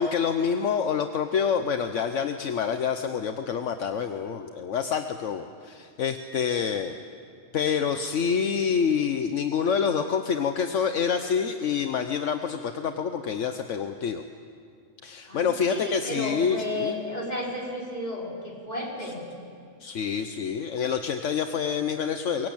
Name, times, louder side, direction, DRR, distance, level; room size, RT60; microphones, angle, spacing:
voice 1, 0.0-7.0 7.5-14.2 15.0-17.0 19.8-22.5, left 7 dB, 75° left, 7 dB, 1.2 m, -27 dB
voice 2, 15.3-19.2, left 1 dB, 35° left, -3 dB, 4.8 m, -33 dB
23.5 x 22.0 x 8.7 m, 2.3 s
omnidirectional pair, 1.3 m